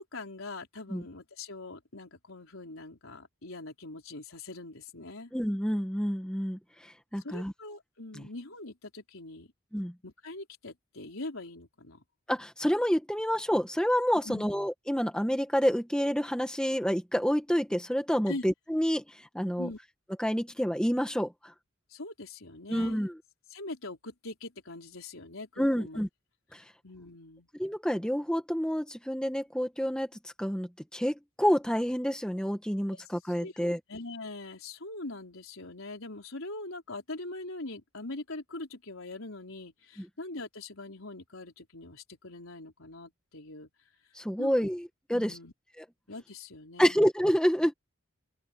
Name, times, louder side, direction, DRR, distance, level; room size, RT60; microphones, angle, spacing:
voice 1, 0.0-5.3 7.2-9.5 10.0-12.0 14.2-14.5 18.3-18.4 19.6-19.8 21.9-23.0 23.5-26.0 26.8-27.5 33.4-33.5 33.9-43.7 44.4-44.7 45.1-45.5 46.1-47.0, left 2 dB, 80° left, 4.2 m, -42 dB
voice 2, 5.3-6.6 7.1-7.5 8.1-8.2 9.7-9.9 12.3-19.0 19.3-19.7 20.2-21.3 22.7-23.2 25.6-26.1 26.5-26.6 27.6-30.1 30.4-33.8 40.0-40.1 44.2-45.4 45.8-45.9 46.8-47.7, equal, 5° left, 1.7 m, -28 dB
open air
head